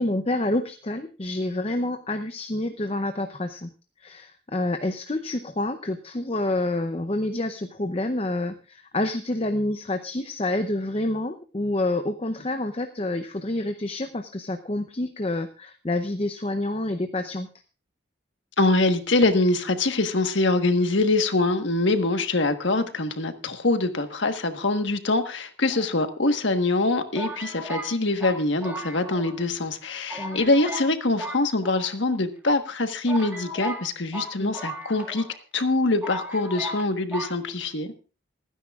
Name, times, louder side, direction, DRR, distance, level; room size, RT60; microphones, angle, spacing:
voice 1, 0.0-3.7 4.0-17.5 30.2-30.4 34.4-34.5, left 1 dB, 30° left, 8 dB, 0.6 m, -28 dB
voice 2, 18.6-35.2 35.5-37.9, left 2 dB, 70° left, 7 dB, 1.4 m, -24 dB
sound 1, 25.7-26.5 27.1-29.4 29.7-29.8 30.1-30.9 31.2-32.2 32.7-32.8 33.1-35.4 35.6-35.7 36.0-36.8 37.1-37.3, right 1 dB, 10° right, 1.9 m, -36 dB
27.5 x 10.0 x 2.4 m, 0.34 s
head